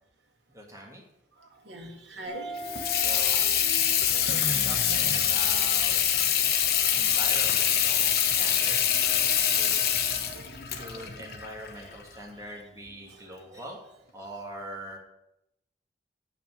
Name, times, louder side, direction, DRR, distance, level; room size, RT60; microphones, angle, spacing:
voice 1, 0.5-1.0 2.9-3.5 4.0-6.0 6.9-9.8 10.7-13.8 14.1-15.0, right 1 dB, 15° right, -2 dB, 2.1 m, -43 dB
voice 2, 1.4-2.6 2.9-3.3 3.9-4.1 6.3-7.2 8.0-8.2 9.5-11.1 13.1-13.6, right 2 dB, 85° right, 2 dB, 1.7 m, -47 dB
sound 1, 2.2-10.5 11.9-12.0, right 1 dB, 65° right, 1.8 m, -42 dB
Water tap faucet / Sink (filling or washing), 2.6-12.2, left 9 dB, 55° left, 1.0 m, -25 dB
8.4 x 5.8 x 7.7 m, 0.83 s
head